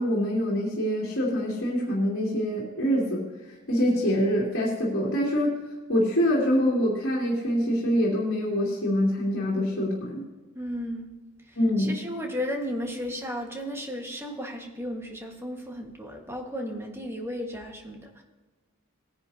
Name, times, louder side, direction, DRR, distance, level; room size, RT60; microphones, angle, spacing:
voice 1, 0.0-3.2 3.7-5.6 5.9-10.2 11.6-11.9, equal, 60° left, -4 dB, 2.7 m, -25 dB
voice 2, 10.5-11.1 11.5-18.2, equal, 10° right, 1 dB, 1.6 m, -34 dB
19.0 x 10.5 x 2.8 m, 1.2 s
head